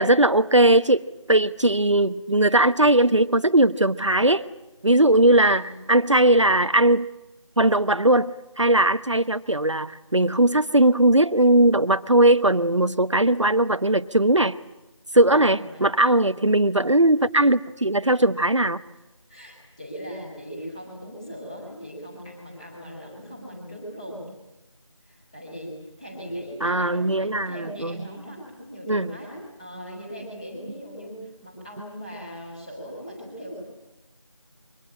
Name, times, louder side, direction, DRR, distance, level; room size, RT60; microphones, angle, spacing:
voice 1, 0.0-4.4 4.8-7.1 7.6-14.5 15.1-18.8 26.6-28.0 28.9-29.1, right 1 dB, 65° right, 11 dB, 1.0 m, -19 dB
voice 2, 15.2-15.9 16.2-16.5 19.3-24.3 25.0-33.6, equal, 10° left, -3 dB, 5.4 m, -39 dB
26.5 x 24.0 x 8.8 m, 0.96 s
figure-of-eight pair, 175°, 16 cm